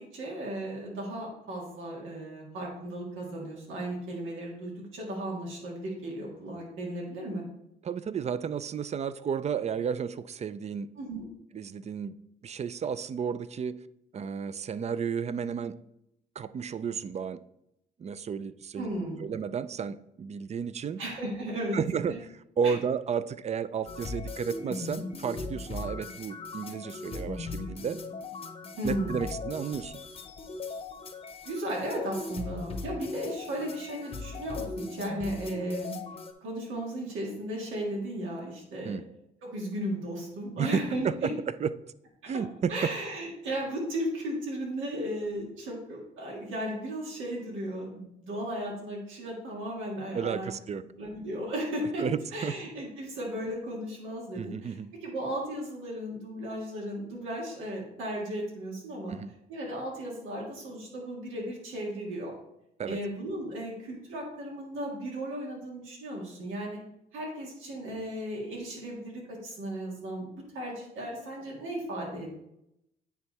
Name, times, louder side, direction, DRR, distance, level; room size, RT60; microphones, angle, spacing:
voice 1, 0.1-7.4 11.0-11.2 18.8-19.3 21.0-21.8 22.1-22.2 22.6-22.8 28.8-29.2 31.4-36.0 36.4-39.0 39.4-41.1 42.7-50.5 51.0-52.0 52.3-59.1 59.5-62.3 62.9-66.8 67.1-72.3, right 1 dB, 85° right, -2 dB, 1.8 m, -35 dB
voice 2, 7.8-10.9 11.5-12.1 12.4-13.8 14.1-15.8 16.4-17.4 18.0-18.9 19.2-21.0 21.7-22.2 22.6-28.0 28.8-30.0 38.8-39.0 40.5-41.3 41.6-41.7 42.3-42.9 50.1-50.8 52.0-52.5 54.4-54.9 59.1-59.3 62.8-63.0, right 7 dB, 35° right, 15 dB, 0.4 m, -32 dB
sound 1, 23.9-36.3, left 3 dB, 30° left, 0.8 m, -38 dB
9.5 x 3.5 x 4.1 m, 0.82 s
cardioid pair, 90°, 20 cm